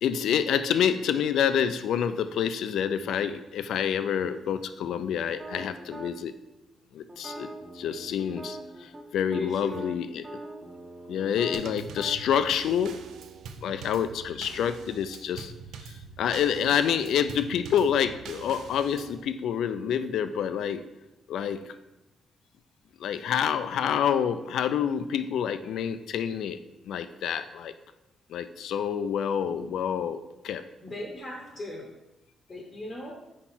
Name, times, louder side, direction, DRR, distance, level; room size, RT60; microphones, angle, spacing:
voice 1, 0.0-6.4 6.9-7.5 7.8-10.2 11.1-13.0 13.6-15.5 16.2-20.8 21.3-21.6 23.0-26.6 26.9-27.7 28.3-30.7, left 8 dB, 75° left, 11 dB, 0.3 m, -27 dB
sound 1, 5.4-6.1 7.1-9.0 9.3-9.4 9.7-12.2, right 1 dB, 20° right, 0.8 m, -42 dB
voice 2, 9.3-9.9 29.6-29.7 30.8-31.9 32.5-33.1, left 2 dB, 20° left, 0 dB, 0.7 m, -38 dB
Drum kit / Snare drum / Bass drum, 11.5-19.2, right 5 dB, 85° right, 0.4 m, -44 dB
4.5 x 4.3 x 5.7 m, 0.97 s
wide cardioid pair, 170°, 0 cm